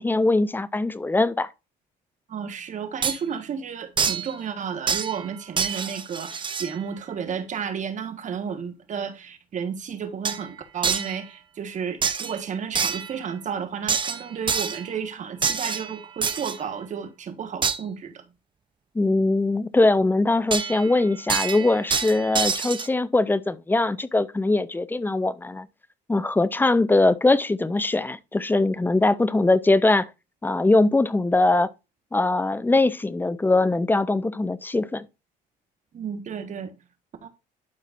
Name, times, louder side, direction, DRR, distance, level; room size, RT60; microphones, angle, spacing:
voice 1, 0.0-1.5 18.9-25.7 26.1-30.1 30.4-31.7 32.1-35.1, left 2 dB, 10° left, 0.5 m, -21 dB
voice 2, 2.3-18.2 35.9-36.7 37.2-37.3, right 7 dB, 45° right, 1.6 m, -32 dB
sound 1, 3.0-3.2 4.0-4.3 4.9-5.3 5.6-6.8 10.2-10.4 10.8-11.2 12.0-12.4 12.7-13.2 13.9-14.9 15.4-16.6 17.6-17.8 20.5-20.9 21.3-22.9, right 6 dB, 30° right, 0.8 m, -26 dB
12.0 x 4.5 x 2.6 m
cardioid pair, 110°, 17 cm